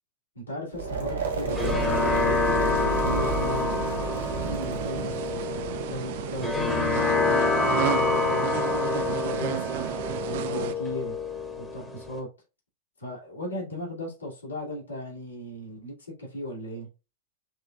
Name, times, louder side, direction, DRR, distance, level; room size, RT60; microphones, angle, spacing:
voice 1, 0.3-2.4 3.0-3.8 4.3-5.4 5.9-7.1 7.6-8.5 9.0-9.9 10.3-11.2 11.6-12.3 13.0-16.9, equal, 80° left, 2.3 m, -36 dB
sound 1, 0.7-6.7, right 4 dB, 70° right, 1.2 m, -32 dB
sound 2, 1.2-12.2, left 3 dB, 5° left, 1.0 m, -27 dB
sound 3, 1.5-10.7, right 11 dB, 50° right, 0.4 m, -33 dB
5.7 x 3.3 x 2.3 m
figure-of-eight pair, 90°, 0 cm